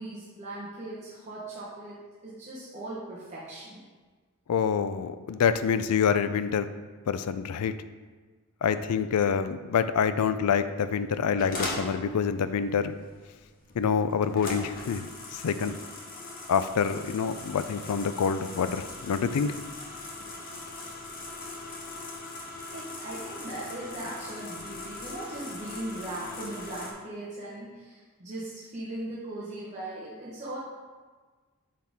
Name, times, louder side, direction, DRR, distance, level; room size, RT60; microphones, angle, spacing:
voice 1, 0.0-3.8 22.7-30.6, right 1 dB, 30° right, -7 dB, 1.0 m, -39 dB
voice 2, 4.5-6.7 7.1-7.7 8.6-13.0 13.8-15.8 16.5-19.5, left 6 dB, 90° left, 12 dB, 0.4 m, -26 dB
sound 1, 11.4-26.9, left 2 dB, 40° left, 1.0 m, -40 dB
8.6 x 4.0 x 3.5 m, 1.4 s
head